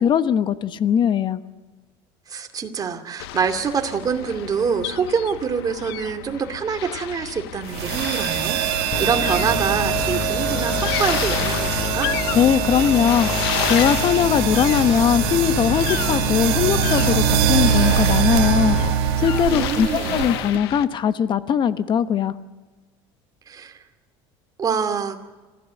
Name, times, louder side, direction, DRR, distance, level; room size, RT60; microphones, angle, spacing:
voice 1, 0.0-1.4 12.3-13.3 13.7-18.8 19.2-22.3, left 8 dB, 40° left, 13 dB, 1.1 m, -20 dB
voice 2, 2.3-12.1 19.5-20.2 23.5-23.7 24.6-25.2, right 6 dB, 30° right, 5 dB, 2.6 m, -25 dB
sound 1, 3.2-20.9, left 15 dB, 85° left, 0.9 m, -31 dB
sound 2, 7.7-20.6, right 10 dB, 85° right, 1.6 m, -23 dB
sound 3, 8.9-18.9, left 13 dB, 60° left, 0.9 m, -29 dB
26.5 x 15.5 x 8.4 m, 1.3 s
supercardioid pair, 110°, 13 cm